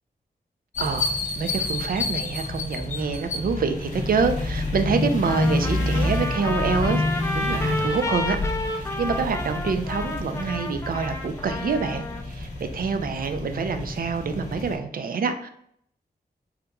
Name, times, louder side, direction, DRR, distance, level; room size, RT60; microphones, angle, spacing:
sound 1, 0.7-14.7, left 2 dB, 45° left, 0.8 m, -29 dB
voice 1, 0.8-8.4 8.7-12.5 12.7-15.5, right 5 dB, 60° right, 7 dB, 0.4 m, -26 dB
Trumpet, 5.2-12.2, left 2 dB, 15° left, 0.4 m, -31 dB
3.6 x 2.9 x 2.2 m, 0.68 s
wide cardioid pair, 85°, 17 cm